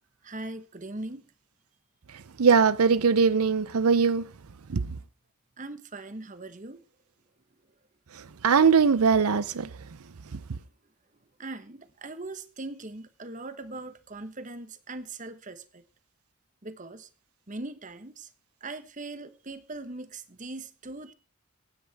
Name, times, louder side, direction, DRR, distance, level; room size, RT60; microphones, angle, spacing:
voice 1, 0.2-1.2 5.6-6.8 11.4-15.8 16.6-17.1 17.5-18.3 18.6-21.1, right 2 dB, 35° right, 1.2 m, -40 dB
voice 2, 2.4-4.3 4.7-4.9 8.1-9.7 10.3-10.4, right 5 dB, 80° right, 0.6 m, -21 dB
24.0 x 9.7 x 3.5 m
head